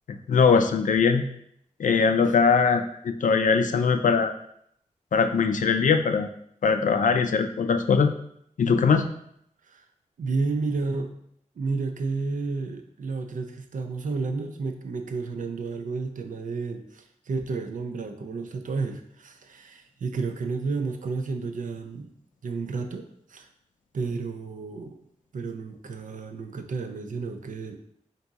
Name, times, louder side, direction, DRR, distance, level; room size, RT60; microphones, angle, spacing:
voice 1, 0.1-1.2 1.8-4.3 5.1-6.3 6.6-8.1 8.6-9.1, left 5 dB, 75° left, 7 dB, 0.4 m, -21 dB
voice 2, 10.2-11.1 11.6-22.1 22.4-23.5 23.9-25.0 25.3-27.8, right 4 dB, 85° right, 7 dB, 0.4 m, -31 dB
3.5 x 2.7 x 4.0 m, 0.70 s
wide cardioid pair, 65°, 13 cm